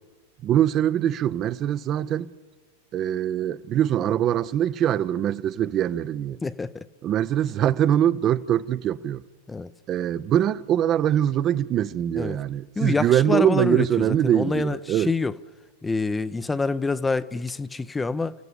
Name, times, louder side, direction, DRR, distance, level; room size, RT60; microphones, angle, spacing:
voice 1, 0.4-2.3 2.9-6.4 7.0-9.2 9.9-15.1, right 11 dB, 30° right, 0.6 m, -23 dB
voice 2, 6.4-6.9 9.5-9.7 12.2-12.4 12.8-15.3 15.8-18.3, left 3 dB, 10° left, 0.6 m, -26 dB
30.0 x 16.0 x 6.9 m
figure-of-eight pair, 90°, 0 cm